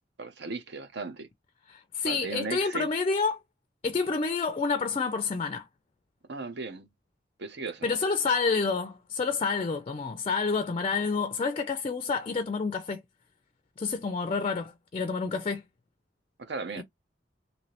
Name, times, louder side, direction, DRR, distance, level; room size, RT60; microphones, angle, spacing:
voice 1, 0.2-1.3 2.0-2.9 6.3-6.9 7.4-8.0 16.4-16.8, right 4 dB, 65° right, 0.7 m, -36 dB
voice 2, 1.7-3.4 3.8-5.6 7.8-13.0 13.8-15.6 16.8-16.9, left 4 dB, 30° left, 0.4 m, -29 dB
3.1 x 2.8 x 2.9 m
head